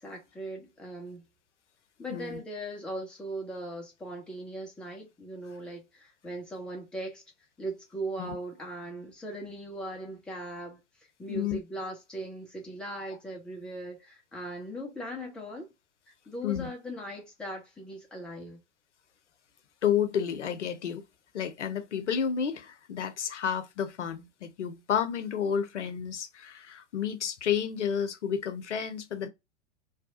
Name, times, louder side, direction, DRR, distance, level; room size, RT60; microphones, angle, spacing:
voice 1, 0.0-1.2 2.0-7.2 7.6-10.8 11.2-15.7 16.3-18.6, right 1 dB, 5° left, 0.3 m, -39 dB
voice 2, 2.1-2.4 8.2-8.3 11.3-11.6 16.4-16.7 19.8-21.0 21.3-29.3, left 8 dB, 70° left, 0.6 m, -31 dB
2.7 x 2.2 x 2.6 m
figure-of-eight pair, 95°, 36 cm